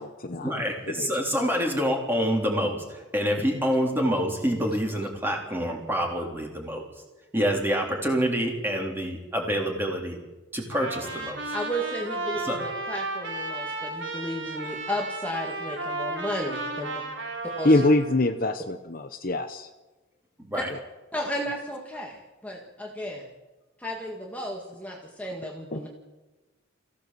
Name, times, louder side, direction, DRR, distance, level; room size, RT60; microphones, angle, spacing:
voice 1, 0.4-6.8 7.3-10.2 10.5-11.4 12.4-12.7 20.4-20.7, equal, 10° right, 0 dB, 3.6 m, -27 dB
Trumpet, 10.7-18.2, right 2 dB, 65° right, 3.8 m, -34 dB
voice 2, 11.5-17.0 17.6-17.8 20.5-20.6 21.1-23.3 23.8-25.9, equal, 5° left, -1 dB, 1.9 m, -33 dB
voice 3, 17.6-19.7 20.7-20.8 25.7-25.8, left 2 dB, 45° left, 8 dB, 0.9 m, -23 dB
23.5 x 16.0 x 7.7 m, 1.2 s
head